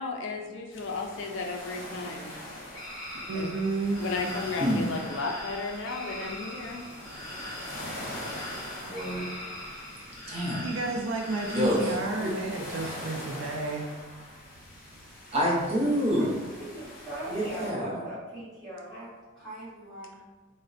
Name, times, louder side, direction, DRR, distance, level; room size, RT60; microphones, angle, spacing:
voice 1, 0.0-2.3 3.3-3.5 4.0-6.8, left 3 dB, 65° left, 2 dB, 0.4 m, -34 dB
sound 1, 0.7-17.7, left 1 dB, 45° left, 1.0 m, -43 dB
sound 2, 2.7-12.0, left 1 dB, 20° left, 0.9 m, -42 dB
voice 2, 3.3-4.0 10.6-13.9, right 3 dB, 65° right, 1 dB, 0.4 m, -31 dB
voice 3, 8.8-9.3 10.3-10.6 11.5-11.9 12.2-12.3 15.3-16.4 17.3-18.0, equal, 30° right, -5 dB, 0.7 m, -27 dB
voice 4, 16.2-20.2, right 1 dB, ahead, -12 dB, 1.4 m, -40 dB
4.2 x 2.1 x 2.5 m, 1.2 s
head